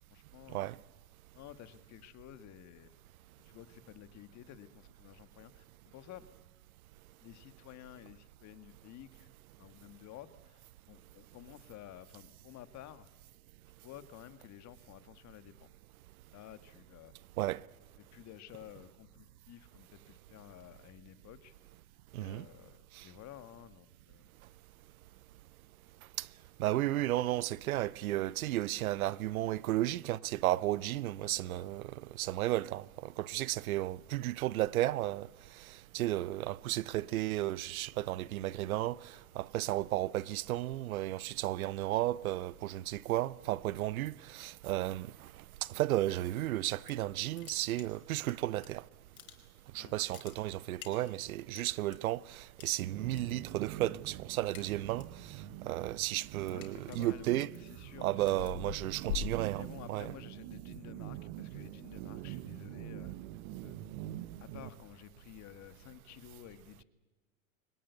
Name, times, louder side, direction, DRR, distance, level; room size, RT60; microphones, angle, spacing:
voice 1, 0.1-0.7 1.3-2.9 3.5-6.3 7.2-9.3 9.6-13.1 13.8-15.7 16.3-17.1 18.0-21.5 22.2-24.3 31.2-31.7 49.8-50.1 56.5-58.5 59.6-63.1 63.6-63.8 64.4-66.8, left 12 dB, 40° left, 1.7 m, -52 dB
voice 2, 22.1-22.5 23.0-23.1 26.2-26.3 26.6-35.3 35.7-45.3 45.7-48.8 49.7-55.4 55.6-57.5 58.0-59.6 59.9-60.1, right 15 dB, 80° right, 0.7 m, -33 dB
sound 1, 46.6-47.1 47.3-48.7 49.0-49.7 50.0-52.0 52.6-53.2 53.5-53.8 54.1-55.2 55.6-60.1, left 11 dB, 75° left, 4.7 m, -44 dB
sound 2, 52.8-64.7, right 13 dB, 55° right, 1.4 m, -45 dB
23.0 x 20.0 x 8.3 m
hypercardioid pair, 105°, 42 cm